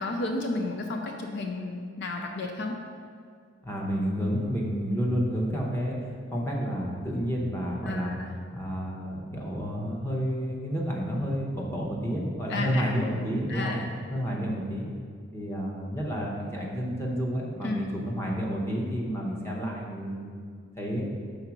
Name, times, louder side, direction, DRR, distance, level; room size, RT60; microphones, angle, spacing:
voice 1, 0.0-2.7 7.8-8.4 12.5-12.9 13.5-13.9 17.6-17.9, left 2 dB, 60° left, 3 dB, 0.5 m, -32 dB
voice 2, 3.6-8.2 8.5-13.8 14.1-14.9 15.3-21.0, equal, 15° left, -2 dB, 0.9 m, -30 dB
5.6 x 3.9 x 6.0 m, 2.2 s
head